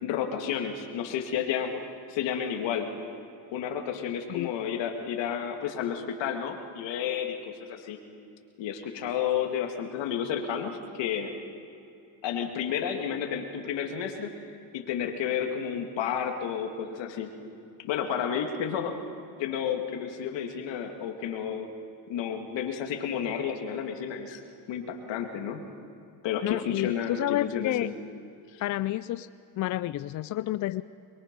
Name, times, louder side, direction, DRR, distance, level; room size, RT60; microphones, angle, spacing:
voice 1, 0.0-1.7 2.1-2.9 3.5-8.0 8.6-11.3 12.2-14.3 14.7-17.3 17.8-18.9 19.4-21.7 22.1-24.4 24.7-25.6 26.2-27.9 28.5-28.6, left 8 dB, 65° left, 3 dB, 2.3 m, -31 dB
voice 2, 26.4-27.9 28.6-29.3 29.6-30.8, left 15 dB, 40° left, 15 dB, 0.4 m, -30 dB
23.5 x 22.5 x 5.3 m, 2.5 s
supercardioid pair, 95°, 48 cm